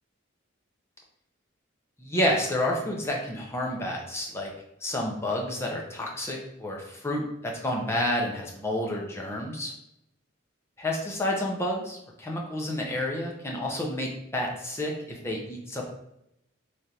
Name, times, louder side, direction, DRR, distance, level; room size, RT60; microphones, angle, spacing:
voice 1, 2.0-4.5 4.8-9.7 10.8-15.9, left 1 dB, 15° left, -1 dB, 0.5 m, -30 dB
3.2 x 2.4 x 2.8 m, 0.80 s
head